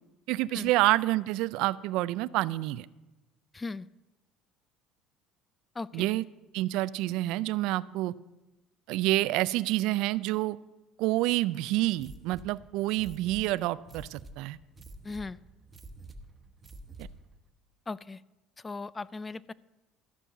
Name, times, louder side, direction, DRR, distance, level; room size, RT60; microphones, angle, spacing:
voice 1, 0.3-2.9 5.9-6.2 6.5-8.1 8.9-10.6 11.0-14.6, right 17 dB, 75° right, 19 dB, 0.3 m, -28 dB
voice 2, 3.5-3.9 5.8-6.1 15.0-15.4 17.9-18.2 18.6-19.5, left 3 dB, 20° left, 21 dB, 0.3 m, -38 dB
sound 1, 11.9-17.3, right 2 dB, 25° right, 1.1 m, -49 dB
13.5 x 5.5 x 8.2 m, 1.0 s
supercardioid pair, 100°, 0 cm